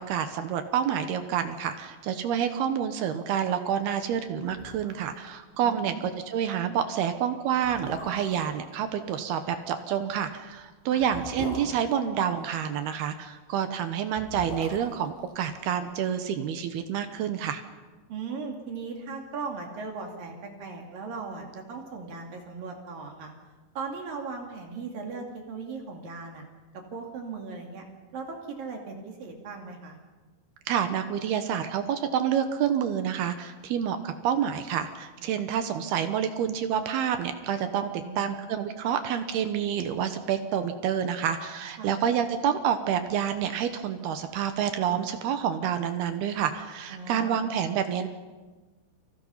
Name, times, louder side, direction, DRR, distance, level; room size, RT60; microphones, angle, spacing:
voice 1, 0.0-17.6 30.7-48.1, right 8 dB, 70° right, 8 dB, 2.8 m, -28 dB
sound 1, 4.5-5.2 5.4-5.5 5.9-6.1 6.8-6.9 7.5-8.5 10.0-12.7 13.9-16.2 16.4-16.5, left 2 dB, 85° left, 10.0 m, -41 dB
voice 2, 5.6-6.1 10.9-11.0 18.1-23.3 23.8-26.4 26.7-27.8 28.1-30.0 37.9-38.4 41.8-41.9 46.9-47.4, right 4 dB, 55° right, 2 dB, 3.8 m, -38 dB
30.0 x 25.0 x 5.7 m, 1.3 s
omnidirectional pair, 5.2 m